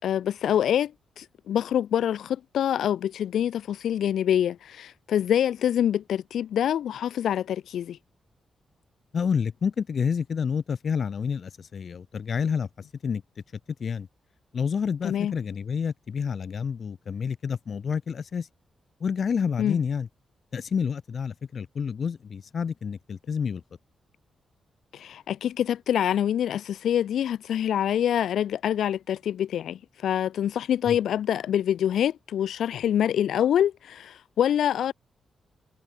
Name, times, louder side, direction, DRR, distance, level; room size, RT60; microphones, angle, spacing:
voice 1, 0.0-8.0 15.0-15.3 19.6-19.8 24.9-34.9, left 10 dB, 85° left, 1.6 m, -25 dB
voice 2, 9.1-12.7 13.0-13.2 13.8-14.1 14.5-18.5 19.0-20.1 20.5-23.6 30.9-31.0, left 6 dB, 50° left, 3.3 m, -29 dB
wide cardioid pair, 125°, 0 cm